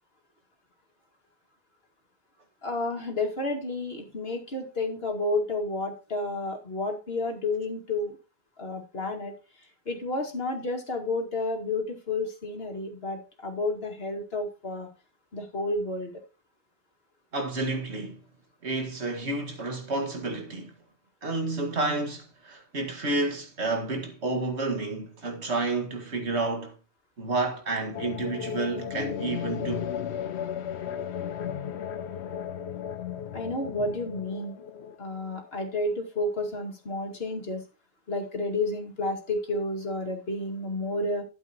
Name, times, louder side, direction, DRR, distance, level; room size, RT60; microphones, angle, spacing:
voice 1, 2.6-8.1 8.6-9.3 9.9-14.9 15.3-16.1 33.3-34.6 35.0-37.6 38.1-41.2, left 2 dB, 65° left, 2.4 m, -31 dB
voice 2, 17.3-18.2 18.6-20.7 21.2-26.7 27.2-29.9, right 2 dB, 80° right, 2.2 m, -30 dB
sound 1, 27.9-35.9, left 9 dB, 80° left, 1.0 m, -35 dB
12.5 x 7.9 x 2.9 m
omnidirectional pair, 1.1 m